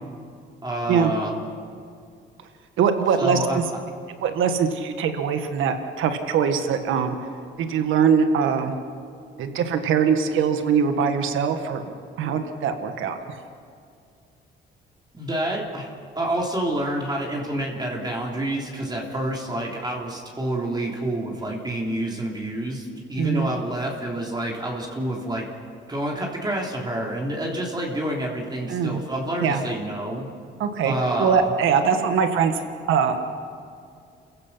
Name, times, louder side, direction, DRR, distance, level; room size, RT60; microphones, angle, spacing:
voice 1, 0.6-1.4 3.2-3.6 15.1-25.5 25.9-30.3 30.8-31.5, right 1 dB, 20° right, -2 dB, 3.4 m, -28 dB
voice 2, 2.8-3.6 4.2-7.2 7.6-8.7 9.4-11.8 12.2-13.4 23.2-23.5 28.7-29.0 29.4-29.6 30.6-30.9 31.2-32.6 32.9-33.2, right 6 dB, 85° right, 7 dB, 1.7 m, -22 dB
28.5 x 15.5 x 5.8 m, 2.4 s
cardioid pair, 90°, 20 cm